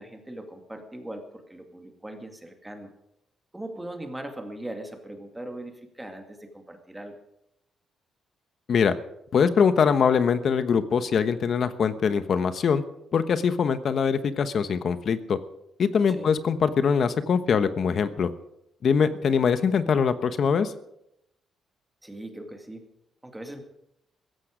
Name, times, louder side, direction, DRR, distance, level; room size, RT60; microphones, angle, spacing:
voice 1, 0.0-2.9 3.5-7.1 16.1-16.3 22.0-22.9 23.2-23.6, right 1 dB, 10° right, 4 dB, 2.2 m, -40 dB
voice 2, 9.3-12.8 13.1-15.4 15.8-18.3 18.8-20.7, left 6 dB, 50° left, 12 dB, 1.0 m, -23 dB
16.0 x 14.5 x 5.1 m, 0.81 s
cardioid pair, 120°, 0 cm